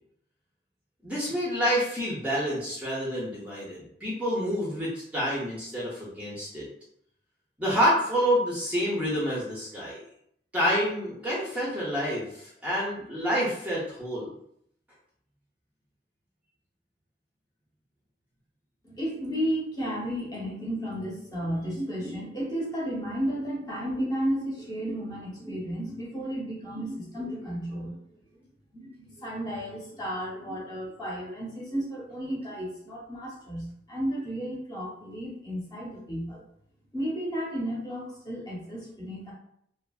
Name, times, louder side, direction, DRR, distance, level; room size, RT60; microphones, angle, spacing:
voice 1, 1.0-6.7 7.6-10.0 10.5-14.3, equal, 10° right, -8 dB, 0.5 m, -28 dB
voice 2, 18.8-28.0 28.7-36.4 36.9-39.3, equal, 20° left, -5 dB, 0.9 m, -33 dB
2.7 x 2.4 x 2.3 m, 0.69 s
head